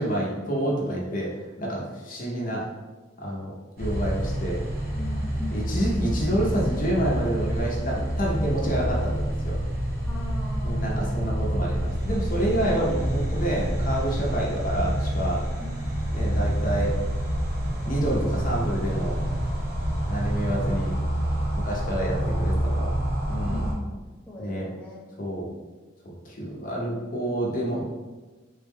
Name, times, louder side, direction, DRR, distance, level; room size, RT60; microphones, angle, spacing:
voice 1, 0.0-2.7 3.2-4.6 5.5-9.6 10.6-15.4 16.1-16.9 17.9-19.2 20.1-20.9 21.5-22.9 23.3-23.7 24.4-24.6 25.2-25.5 26.0-27.8, right 1 dB, 45° left, -3 dB, 0.7 m, -28 dB
sound 1, 3.8-23.7, equal, 55° right, 0.9 m, -27 dB
voice 2, 4.9-6.1 10.0-11.2 15.6-16.1 23.4-25.5, left 1 dB, 10° left, -6 dB, 0.6 m, -41 dB
3.5 x 2.2 x 3.4 m, 1.2 s
head